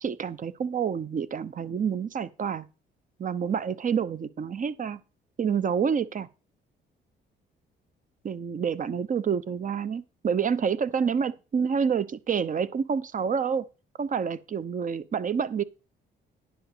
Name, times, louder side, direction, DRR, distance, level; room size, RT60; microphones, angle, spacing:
voice 1, 0.0-2.7 3.2-5.0 5.4-6.3 8.2-13.6 14.0-15.6, right 6 dB, 40° right, 0.8 m, -28 dB
10.5 x 5.0 x 6.6 m
cardioid pair, 90°, 20 cm